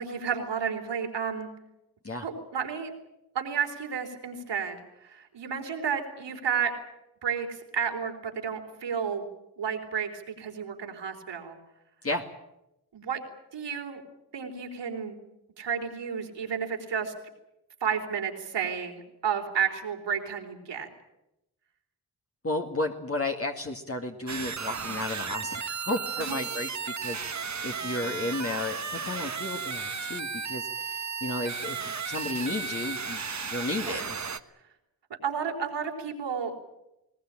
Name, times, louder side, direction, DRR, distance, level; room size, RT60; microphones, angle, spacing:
voice 1, 0.0-1.5 2.2-2.9 3.3-6.7 7.2-9.3 9.6-11.6 12.9-13.2 13.5-14.0 14.3-15.2 15.6-17.1 17.8-20.9 26.2-26.4 33.8-34.1 35.2-36.5, right 7 dB, 85° right, 3 dB, 4.0 m, -31 dB
voice 2, 22.4-34.2, left 2 dB, 35° left, 2 dB, 2.2 m, -33 dB
sound 1, 24.3-34.4, right 5 dB, 40° right, 1.4 m, -34 dB
20.5 x 19.5 x 8.9 m, 0.90 s
cardioid pair, 55°, 42 cm